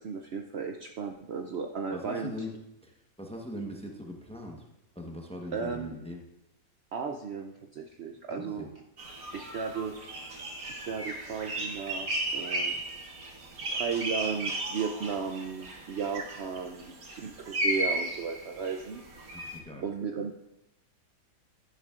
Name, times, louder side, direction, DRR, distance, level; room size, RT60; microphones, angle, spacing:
voice 1, 0.0-2.3 5.5-5.9 6.9-8.7 9.3-10.0 10.7-12.8 13.7-19.0 19.8-20.4, right 5 dB, 80° right, 4 dB, 0.5 m, -35 dB
voice 2, 1.9-2.6 2.8-4.7 4.9-6.2 8.3-8.7 9.5-9.7 19.3-19.8, left 1 dB, 5° left, 1 dB, 0.7 m, -41 dB
sound 1, 9.0-19.6, right 1 dB, 60° right, 1.8 m, -35 dB
11.0 x 10.5 x 2.5 m, 0.88 s
omnidirectional pair, 1.8 m